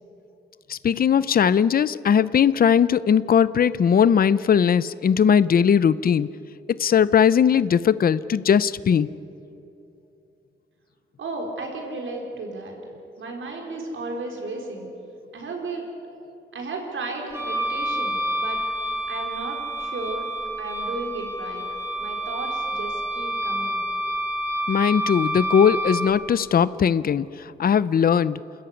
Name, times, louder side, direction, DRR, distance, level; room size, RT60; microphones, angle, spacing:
voice 1, 0.7-6.3 6.7-9.1 24.7-27.3 27.6-28.4, left 7 dB, 50° left, 17 dB, 0.5 m, -19 dB
voice 2, 11.2-12.7 13.2-14.9 15.3-15.9 16.5-18.6 19.1-20.3 20.6-21.6 22.0-23.8, right 2 dB, 85° right, 1 dB, 4.4 m, -34 dB
Wind instrument woodwind instrument, 17.3-26.1, equal, 10° right, 3.2 m, -28 dB
28.5 x 14.0 x 9.7 m, 2.8 s
wide cardioid pair, 150°, 20 cm